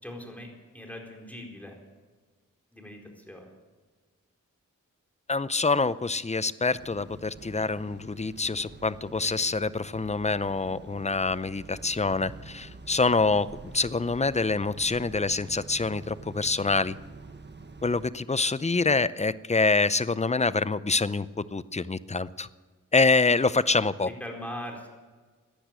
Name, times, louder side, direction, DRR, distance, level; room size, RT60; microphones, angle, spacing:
voice 1, 0.0-1.8 2.7-3.5 24.0-24.9, left 1 dB, 5° left, 1 dB, 4.4 m, -41 dB
voice 2, 5.3-13.5 13.7-16.9 17.8-22.5 22.9-24.1, left 3 dB, 20° left, 16 dB, 0.6 m, -26 dB
sound 1, 6.7-18.1, right 3 dB, 35° right, 1.2 m, -47 dB
15.5 x 10.0 x 8.8 m, 1.4 s
cardioid pair, 55°, 32 cm